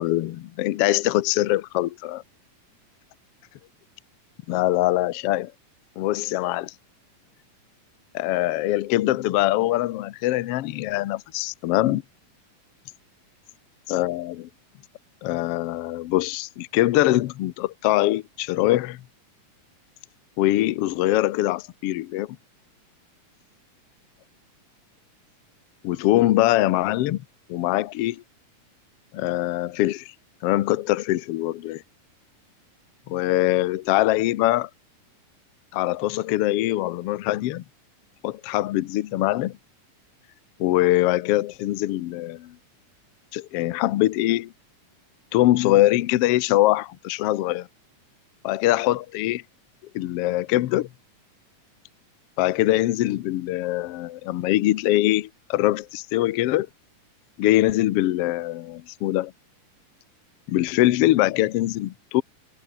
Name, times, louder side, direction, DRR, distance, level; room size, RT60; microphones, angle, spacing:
voice 1, 0.0-2.2 4.5-5.5 6.0-6.7 8.1-12.0 13.9-14.5 15.2-19.0 20.4-22.4 25.8-27.2 27.5-28.2 29.1-30.1 30.4-31.8 33.1-34.7 35.7-37.6 38.2-39.6 40.6-42.6 43.3-44.5 45.3-47.7 48.4-49.4 49.9-50.9 52.4-56.7 57.4-59.3 60.5-62.2, left 16 dB, 75° left, 1.4 m, -23 dB
omnidirectional pair, 3.7 m